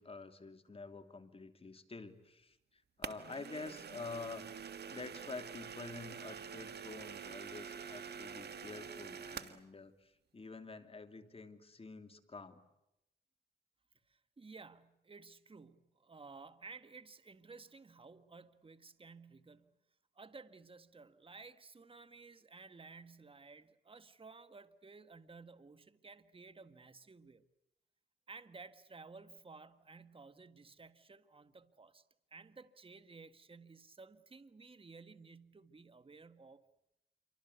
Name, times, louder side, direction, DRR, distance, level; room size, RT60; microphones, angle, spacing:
voice 1, 0.0-12.6, left 3 dB, 30° left, 2.9 m, -48 dB
sound 1, 3.0-9.6, right 7 dB, 60° right, 1.7 m, -47 dB
voice 2, 14.1-19.8 20.1-27.5 28.3-32.0 32.3-36.6, right 4 dB, 30° right, 1.7 m, -55 dB
28.0 x 24.5 x 8.2 m
cardioid pair, 70°, 19 cm